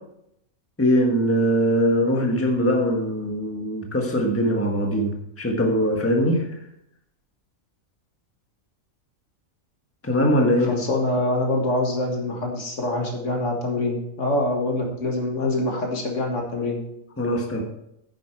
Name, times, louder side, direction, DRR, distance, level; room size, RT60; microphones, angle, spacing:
voice 1, 0.8-6.5 10.0-10.7 17.2-17.6, equal, 10° left, 1 dB, 1.4 m, -21 dB
voice 2, 10.6-16.8, left 2 dB, 60° left, 1 dB, 2.0 m, -25 dB
9.8 x 7.8 x 4.6 m, 0.79 s
omnidirectional pair, 1.5 m